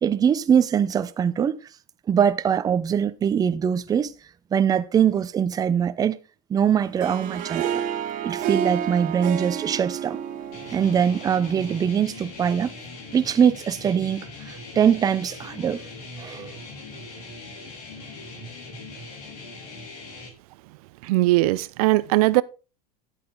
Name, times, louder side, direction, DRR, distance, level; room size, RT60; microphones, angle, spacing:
voice 1, 0.0-1.6 2.1-4.1 4.5-6.2 6.5-7.8 8.2-10.2 10.7-12.7 13.1-15.8 16.2-16.5, right 8 dB, 20° right, 0.6 m, -22 dB
Harp, 6.8-12.0, right 9 dB, 45° right, 1.4 m, -30 dB
sound 1, 10.5-20.3, left 3 dB, 75° left, 4.2 m, -40 dB
voice 2, 21.0-22.4, right 19 dB, 70° right, 0.5 m, -20 dB
11.0 x 8.4 x 3.9 m
supercardioid pair, 135°, 20 cm